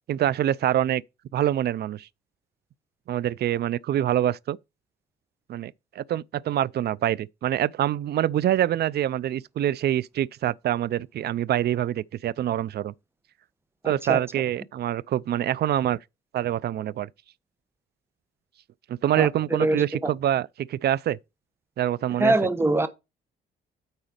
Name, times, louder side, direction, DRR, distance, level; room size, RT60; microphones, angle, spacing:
voice 1, 0.1-1.0 1.3-2.1 3.1-4.6 5.5-12.9 13.8-16.0 16.3-17.1 18.9-21.2 21.8-22.3, right 11 dB, 55° right, 0.4 m, -25 dB
voice 2, 13.8-14.2 19.2-19.3 19.6-19.8 22.2-22.9, right 2 dB, 10° right, 1.0 m, -22 dB
9.0 x 4.0 x 5.1 m
cardioid pair, 90°, 20 cm